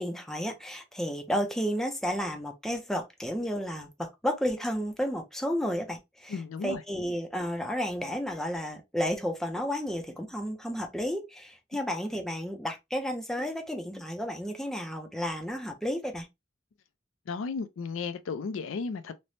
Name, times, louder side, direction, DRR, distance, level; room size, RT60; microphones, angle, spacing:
voice 1, 0.0-16.3, equal, ahead, 0.4 m, -32 dB
voice 2, 6.3-6.8 17.3-19.1, left 5 dB, 80° left, 0.4 m, -34 dB
3.2 x 2.0 x 2.6 m
head